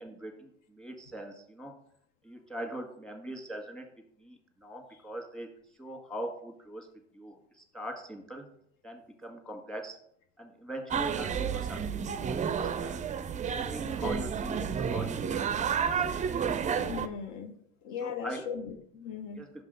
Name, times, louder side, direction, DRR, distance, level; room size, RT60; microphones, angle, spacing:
voice 1, 0.0-1.7 2.2-3.9 4.2-5.5 5.8-6.9 7.1-8.5 8.8-10.0 10.4-12.2 12.6-13.0 13.4-16.0 18.0-18.5 19.3-19.6, right 1 dB, ahead, 2 dB, 1.7 m, -41 dB
sound 1, 10.9-17.1, right 7 dB, 20° right, 0.4 m, -31 dB
voice 2, 16.8-17.5 17.8-19.4, left 6 dB, 65° left, 6 dB, 0.8 m, -38 dB
6.0 x 5.4 x 3.8 m, 0.67 s
hypercardioid pair, 75°, 34 cm